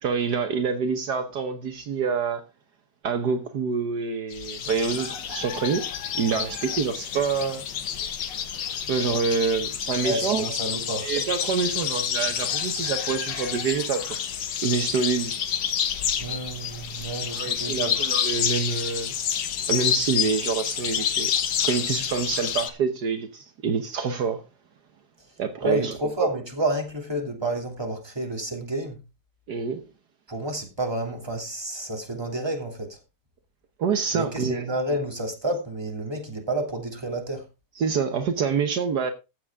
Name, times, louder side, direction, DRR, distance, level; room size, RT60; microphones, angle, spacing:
voice 1, 0.0-2.4 3.0-5.8 6.1-7.6 8.9-10.4 11.0-14.1 14.6-15.3 17.4-19.1 19.7-21.3 21.6-24.4 25.4-25.9 26.2-26.3 29.5-29.8 33.8-34.6 37.8-39.1, right 5 dB, 65° right, 1.7 m, -26 dB
sound 1, 4.3-22.7, left 9 dB, 80° left, 1.8 m, -29 dB
voice 2, 10.0-11.1 16.2-17.9 25.6-29.0 30.3-33.0 34.1-37.5, right 1 dB, 15° right, 2.8 m, -30 dB
15.0 x 8.1 x 3.6 m
omnidirectional pair, 1.9 m